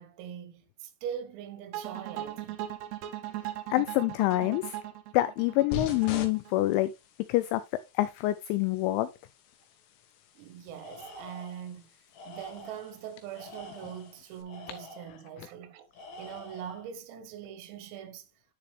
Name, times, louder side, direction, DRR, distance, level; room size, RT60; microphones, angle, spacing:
voice 1, 0.0-2.7 10.4-11.9 12.3-15.9 16.2-18.3, right 9 dB, 85° right, 3.9 m, -42 dB
sound 1, 1.7-6.8, right 13 dB, 70° right, 2.7 m, -39 dB
voice 2, 3.7-4.8 5.1-6.9 7.3-7.6 8.0-9.1, left 16 dB, 90° left, 2.7 m, -26 dB
sound 2, 5.7-14.4, left 5 dB, 70° left, 3.0 m, -45 dB
Tools, 10.8-11.7 12.1-12.9 13.3-15.2 15.9-16.9, left 1 dB, 50° left, 3.1 m, -47 dB
10.5 x 4.9 x 3.2 m
omnidirectional pair, 5.9 m